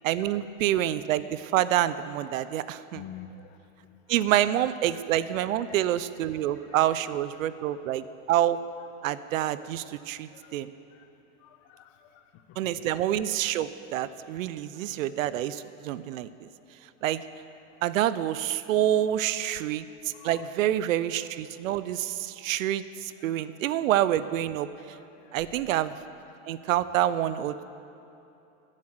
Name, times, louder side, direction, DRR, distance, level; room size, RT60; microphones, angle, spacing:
voice 1, 0.0-3.0 4.1-8.6 9.0-10.7 12.6-16.5 17.0-17.2 17.8-24.7 25.3-25.9 26.5-27.6, right 12 dB, 80° right, 15 dB, 0.7 m, -27 dB
voice 2, 2.9-3.6 5.3-5.8 6.3-6.8 10.3-11.1 11.4-12.8 14.7-15.0 19.5-19.6 20.1-20.5 23.2-23.4 24.9-25.4 26.3-26.4, left 9 dB, 40° left, 8 dB, 0.9 m, -50 dB
14.5 x 7.5 x 7.9 m, 2.9 s
supercardioid pair, 140°, 40 cm